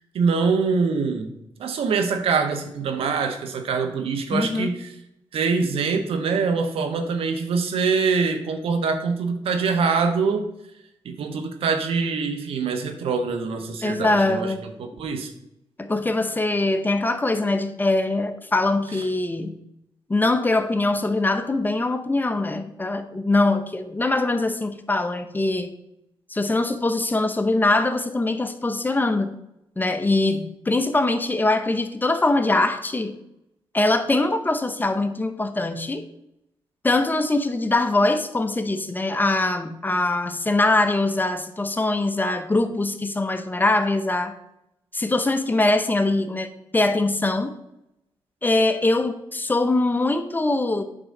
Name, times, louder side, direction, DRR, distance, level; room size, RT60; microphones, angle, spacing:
voice 1, 0.1-1.3 1.6-4.9 5.3-10.4 11.0-14.5 14.8-15.3, right 5 dB, 85° right, 7 dB, 1.1 m, -24 dB
voice 2, 4.3-4.7 13.8-14.6 15.8-19.6 20.1-25.7 26.3-29.3 29.8-33.2 33.7-36.0 36.8-44.4 44.9-47.5 48.4-50.8, left 2 dB, 20° left, 8 dB, 0.8 m, -22 dB
8.8 x 3.8 x 6.5 m, 0.82 s
cardioid pair, 80°, 9 cm